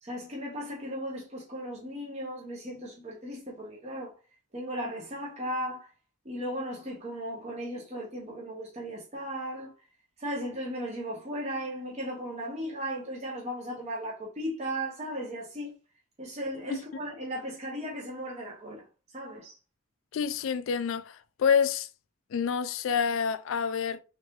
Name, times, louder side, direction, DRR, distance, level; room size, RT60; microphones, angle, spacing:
voice 1, 0.0-4.1 4.5-5.9 6.2-9.7 10.2-15.8 16.2-18.8 19.1-19.6, equal, 30° right, 0.7 m, -36 dB
voice 2, 20.1-21.9 22.3-24.0, left 7 dB, 70° left, 0.3 m, -27 dB
3.3 x 3.1 x 2.9 m
head